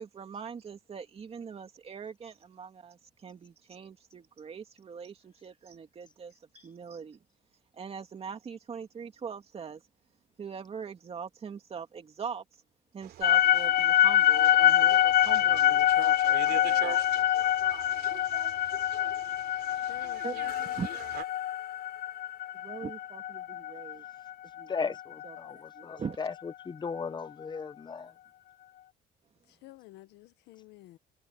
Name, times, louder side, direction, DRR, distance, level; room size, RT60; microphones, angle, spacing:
voice 1, 0.0-6.3 6.6-7.2 7.7-9.8 10.4-12.4 12.9-17.1 20.2-20.9 22.6-24.0 24.6-24.9 25.2-26.2, right 6 dB, 35° right, 2.6 m, -42 dB
sound 1, 13.0-21.2, right 12 dB, 70° right, 3.1 m, -44 dB
sound 2, 13.2-25.4, left 12 dB, 65° left, 0.6 m, -25 dB
voice 2, 19.9-21.0 29.5-31.0, left 17 dB, 85° left, 1.3 m, -50 dB
voice 3, 24.7-28.1, left 5 dB, 25° left, 0.8 m, -36 dB
cardioid pair, 110°, 17 cm